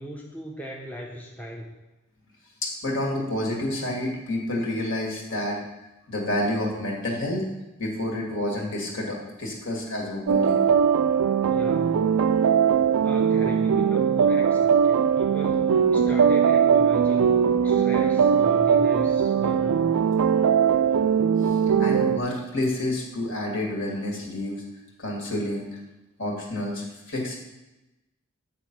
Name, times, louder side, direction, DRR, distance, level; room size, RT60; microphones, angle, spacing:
voice 1, 0.0-1.7 11.5-12.2 13.0-20.0, equal, 10° left, -2 dB, 0.7 m, -38 dB
voice 2, 2.6-5.6 6.1-7.4 7.8-10.6 21.4-24.6 25.0-25.8 26.2-27.4, left 1 dB, 60° left, -1 dB, 2.0 m, -29 dB
sound 1, 10.3-22.2, right 7 dB, 80° right, 0.4 m, -20 dB
8.8 x 4.2 x 6.0 m, 1.0 s
head